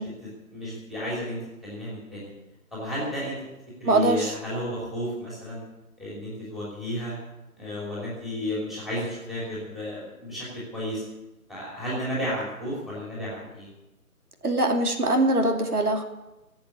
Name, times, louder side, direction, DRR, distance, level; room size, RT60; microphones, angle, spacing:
voice 1, 0.2-2.3 2.7-3.4 3.8-5.6 6.0-7.1 7.6-11.0 11.5-13.7, equal, ahead, -7 dB, 3.0 m, -33 dB
voice 2, 3.8-4.3 14.4-16.0, right 2 dB, 80° right, 4 dB, 2.8 m, -22 dB
16.5 x 8.1 x 9.6 m, 0.99 s
figure-of-eight pair, 160°, 44 cm